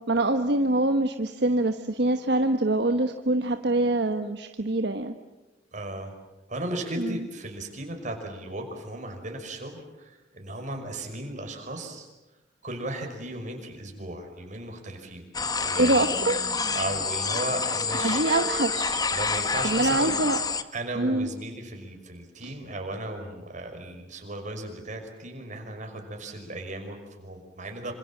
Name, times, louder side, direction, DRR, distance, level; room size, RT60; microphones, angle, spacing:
voice 1, 0.0-5.1 7.0-7.2 15.8-16.4 18.0-19.0 19.6-20.4 20.9-21.3 22.4-22.5, right 2 dB, 65° right, 6 dB, 1.3 m, -25 dB
voice 2, 5.7-6.1 6.5-12.1 12.6-15.2 15.6-16.1 16.7-18.2 19.1-20.2 20.7-27.9, right 1 dB, 45° right, 4 dB, 5.7 m, -36 dB
sound 1, 15.3-20.6, left 4 dB, 20° left, 1.2 m, -28 dB
27.5 x 26.5 x 7.4 m, 1.1 s
head